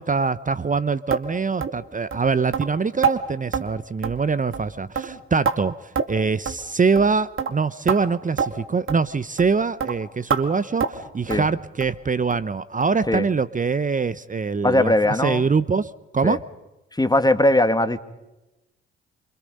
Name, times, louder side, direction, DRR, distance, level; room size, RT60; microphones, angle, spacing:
voice 1, 0.0-14.9 15.2-16.4, right 5 dB, 25° right, 16 dB, 0.8 m, -23 dB
sound 1, 1.1-1.3 1.6-1.8 2.1-2.2 2.5-2.7 3.0-3.2 3.5-3.7 4.0-4.3 4.5-4.7 5.0-5.6 6.0-6.2 6.5-6.6 7.0-7.1 7.4-7.5 7.9-8.0 8.4-8.5 8.9-9.0 9.4-9.5 9.8-9.9 10.3-10.4 10.8-11.0 11.3-11.5 11.8-12.0 12.3-12.4 12.8-12.9 13.3-13.4, right 6 dB, 45° right, 2.4 m, -25 dB
voice 2, 14.6-15.4 16.2-16.4 17.0-18.0, left 1 dB, 15° left, 10 dB, 2.0 m, -19 dB
27.5 x 26.0 x 5.4 m, 0.96 s
hypercardioid pair, 45°, 29 cm